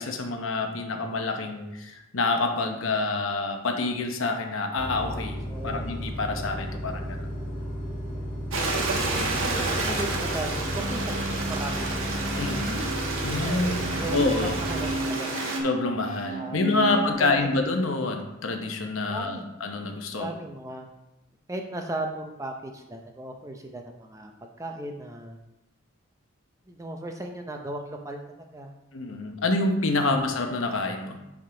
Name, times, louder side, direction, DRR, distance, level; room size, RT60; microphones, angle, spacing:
voice 1, 0.0-5.4 5.6-7.3 12.3-12.8 13.2-13.8 14.1-14.5 15.6-20.3 28.9-31.2, left 3 dB, 70° left, 4 dB, 0.9 m, -27 dB
sound 1, 4.8-15.0, equal, 25° left, 1.6 m, -34 dB
voice 2, 5.5-5.9 8.9-11.1 11.5-12.1 13.9-14.2 14.4-15.3 16.3-17.5 19.1-19.5 20.2-20.9 21.5-24.3 24.6-25.4 26.7-28.2 28.5-28.8 30.1-30.2, right 1 dB, 15° right, 3 dB, 0.5 m, -36 dB
Stream, 8.5-15.6, right 2 dB, 75° right, 1.1 m, -30 dB
sound 2, 8.8-17.1, right 1 dB, 90° right, 1.2 m, -34 dB
10.0 x 3.6 x 3.8 m, 0.95 s
head